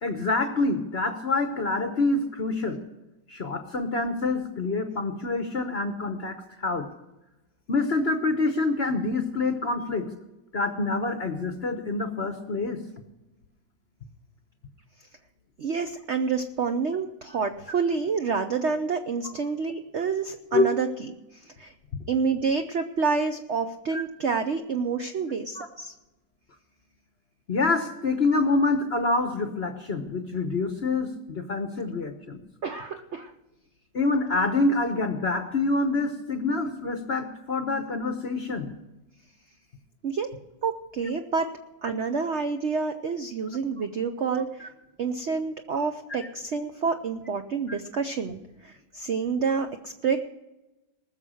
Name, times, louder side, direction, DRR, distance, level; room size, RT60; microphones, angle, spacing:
voice 1, 0.0-2.8 3.3-6.9 7.7-10.1 10.5-12.8 20.5-20.7 23.9-24.0 25.6-25.7 27.5-32.4 33.9-38.7 44.6-44.7, left 3 dB, 45° left, 7 dB, 0.9 m, -26 dB
voice 2, 15.6-20.9 21.3-21.7 22.1-25.9 32.6-33.3 40.0-40.3 40.6-41.5 41.8-44.7 45.0-50.2, right 5 dB, 65° right, 7 dB, 0.6 m, -28 dB
20.0 x 6.8 x 6.3 m, 1.0 s
omnidirectional pair, 2.1 m